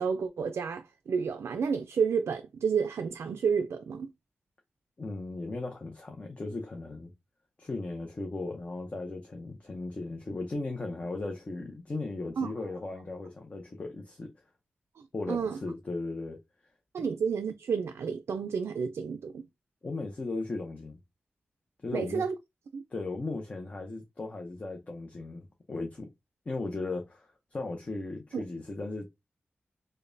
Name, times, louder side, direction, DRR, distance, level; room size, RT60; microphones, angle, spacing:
voice 1, 0.0-4.1 12.4-12.5 15.0-15.6 16.9-19.5 21.9-22.3 22.7-22.8 28.3-28.4, right 6 dB, 80° right, 0.3 m, -30 dB
voice 2, 5.0-7.1 7.6-14.3 15.1-16.4 17.0-17.1 19.8-21.0 21.8-22.2 22.9-26.1 26.5-29.1, left 2 dB, 30° left, 0.6 m, -37 dB
5.1 x 2.1 x 2.6 m
wide cardioid pair, 155°, 4 cm